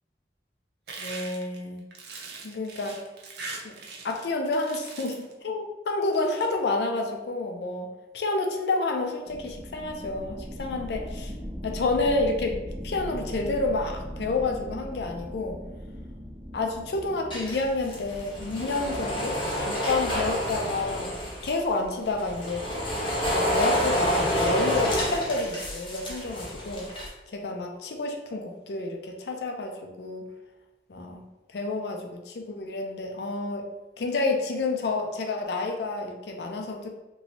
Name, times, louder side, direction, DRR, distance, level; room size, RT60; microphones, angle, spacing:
sound 1, 0.9-4.3 4.5-5.3 6.0-6.5, right 3 dB, 65° right, 0.5 m, -41 dB
voice 1, 1.0-1.8 2.4-3.0 3.6-3.7 4.0-11.3 11.6-12.5 12.8-15.6 16.5-21.1 21.4-22.7 23.3-26.9 27.3-30.2 30.9-31.2 31.5-33.7 34.0-36.9, left 3 dB, 70° left, 3 dB, 0.4 m, -29 dB
sound 2, 9.3-21.5, equal, 10° right, 0.5 m, -40 dB
sound 3, 17.3-21.6 22.1-27.1, equal, 30° left, 0.7 m, -28 dB
3.0 x 2.6 x 2.8 m, 1.1 s
head